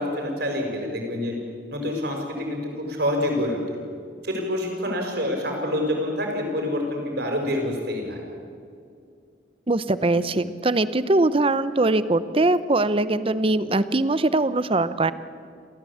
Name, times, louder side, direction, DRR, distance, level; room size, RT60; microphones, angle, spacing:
voice 1, 0.0-1.4 1.7-3.6 4.2-8.2, left 1 dB, 60° right, 2 dB, 5.8 m, -27 dB
voice 2, 9.7-15.1, right 2 dB, 30° right, 14 dB, 0.7 m, -21 dB
30.0 x 14.0 x 8.6 m, 2.3 s
head